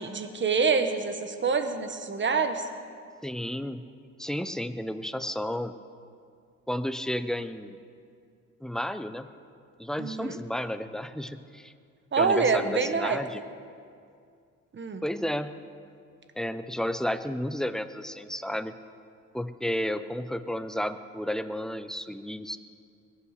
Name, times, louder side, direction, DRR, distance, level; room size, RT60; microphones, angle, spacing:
voice 1, 0.0-2.6 10.0-10.4 12.1-13.2 14.7-15.0, right 5 dB, 40° right, 8 dB, 1.3 m, -26 dB
voice 2, 3.2-3.8 4.2-5.7 6.7-7.8 8.6-9.3 9.8-11.7 12.2-13.4 15.0-15.5 16.4-18.7 19.3-22.6, equal, ahead, 11 dB, 0.7 m, -32 dB
21.5 x 8.6 x 6.6 m, 2.3 s
cardioid pair, 90°, 30 cm